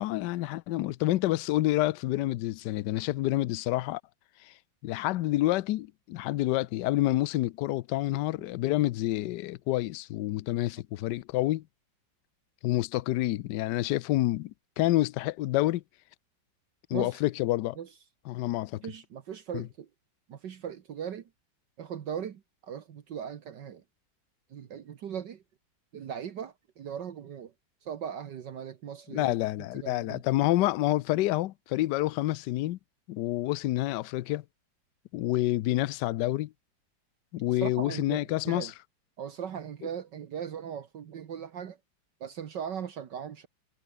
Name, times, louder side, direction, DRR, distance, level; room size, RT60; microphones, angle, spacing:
voice 1, 0.0-4.0 4.4-4.5 4.8-11.6 12.6-15.8 16.9-17.8 18.3-18.8 19.5-19.7 29.1-32.8 33.1-34.4 35.1-36.5 37.3-38.7, left 16 dB, 75° left, 1.2 m, -28 dB
voice 2, 18.8-19.9 20.3-21.2 21.8-23.8 24.5-25.4 25.9-27.5 27.8-29.4 29.8-30.2 37.6-38.7 39.2-41.8 42.2-43.5, right 8 dB, 65° right, 1.9 m, -38 dB
omnidirectional pair, 2.1 m